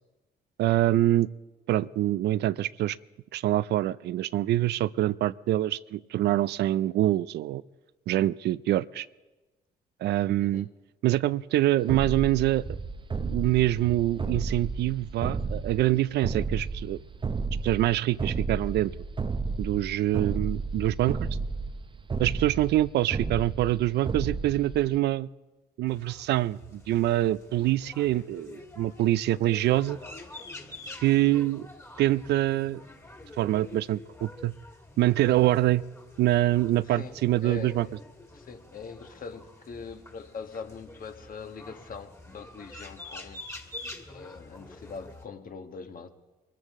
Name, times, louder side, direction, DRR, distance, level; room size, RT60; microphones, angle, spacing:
voice 1, 0.6-1.3 1.7-3.0 3.3-7.6 8.1-9.1 10.0-10.7 11.0-12.7 13.2-17.0 17.6-18.9 19.6-21.3 22.2-25.3 25.8-30.0 31.0-31.7 32.0-32.8 33.4-34.5 35.0-35.8 36.2-37.9, right 14 dB, 75° right, 0.4 m, -25 dB
sound 1, 11.9-25.0, right 4 dB, 30° right, 0.7 m, -33 dB
sound 2, 25.9-45.2, left 2 dB, 15° left, 2.0 m, -47 dB
voice 2, 36.8-38.0 38.3-43.4 44.1-46.1, left 5 dB, 55° left, 1.4 m, -42 dB
23.5 x 14.5 x 3.7 m
supercardioid pair, 65°, 18 cm